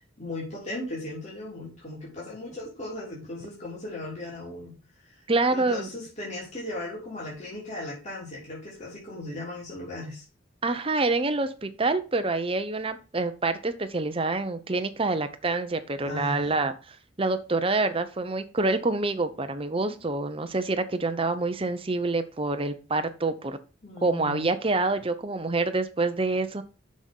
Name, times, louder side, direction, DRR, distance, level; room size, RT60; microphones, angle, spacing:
voice 1, 0.2-5.2 5.5-10.2 16.0-16.6 19.8-20.0 23.8-24.5, left 2 dB, 35° left, -7 dB, 3.3 m, -37 dB
voice 2, 5.3-5.9 10.6-16.7 17.2-23.6 24.0-26.6, right 3 dB, 25° right, 9 dB, 0.7 m, -27 dB
6.4 x 6.1 x 5.4 m, 0.34 s
head